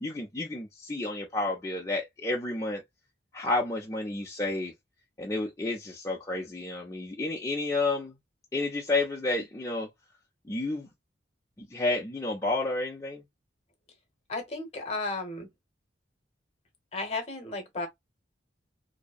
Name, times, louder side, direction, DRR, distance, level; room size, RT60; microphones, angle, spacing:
voice 1, 0.0-2.8 3.3-4.7 5.2-8.1 8.5-9.9 10.5-10.9 11.6-13.2, left 2 dB, 15° left, 0.5 m, -30 dB
voice 2, 14.3-15.5 16.9-17.9, left 3 dB, 35° left, 0.9 m, -34 dB
2.6 x 2.1 x 2.3 m
head